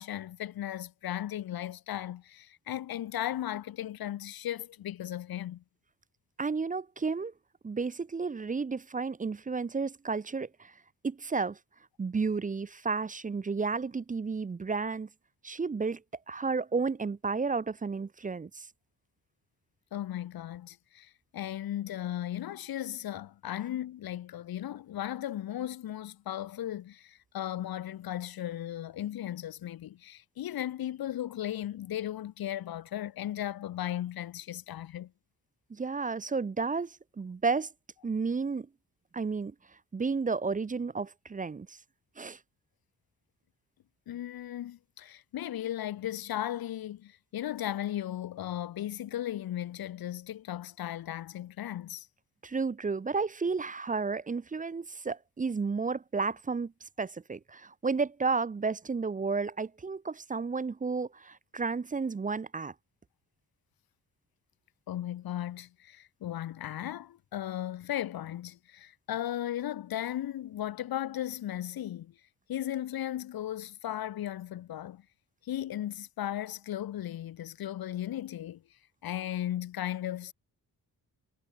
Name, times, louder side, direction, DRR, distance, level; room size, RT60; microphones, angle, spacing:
voice 1, 0.0-5.6 19.9-35.1 44.1-52.1 64.9-72.1 72.5-75.0 75.4-78.6 79.0-80.3, left 12 dB, 70° left, 0.7 m, -36 dB
voice 2, 6.4-7.3 7.6-10.7 11.0-11.6 12.0-15.1 15.4-16.0 16.3-18.7 35.7-37.7 38.0-38.7 39.1-39.5 39.9-41.7 42.2-42.4 52.4-56.7 57.0-62.7, right 4 dB, 20° right, 0.5 m, -32 dB
wide cardioid pair, 110°, 37 cm